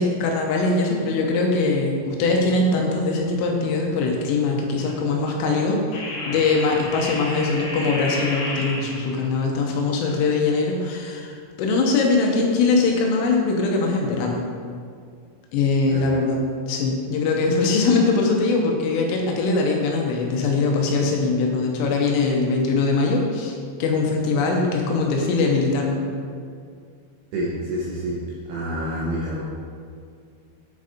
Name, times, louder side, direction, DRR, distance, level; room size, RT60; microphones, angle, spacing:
voice 1, 0.0-14.4 15.5-26.0, left 3 dB, 85° left, 0 dB, 3.3 m, -22 dB
sound 1, 4.8-5.0 5.9-9.3, left 1 dB, 70° left, 2.3 m, -32 dB
voice 2, 27.3-28.2 28.5-29.4, right 1 dB, 75° right, -6 dB, 2.5 m, -27 dB
9.2 x 4.9 x 4.1 m, 2.2 s
omnidirectional pair, 5.9 m